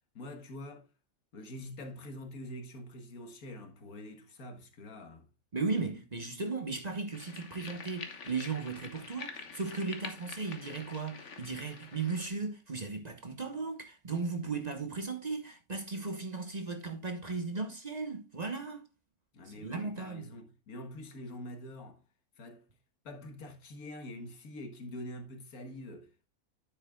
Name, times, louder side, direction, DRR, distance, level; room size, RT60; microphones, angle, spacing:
voice 1, 0.2-0.9 1.3-5.3 19.3-22.0 22.4-22.6 23.1-26.3, left 1 dB, 85° left, 1.8 m, -45 dB
voice 2, 5.5-18.8 19.4-20.3, right 4 dB, 30° right, 1.1 m, -36 dB
sound 1, 7.1-12.3, left 5 dB, 55° left, 1.5 m, -46 dB
9.6 x 8.2 x 2.3 m
omnidirectional pair, 1.5 m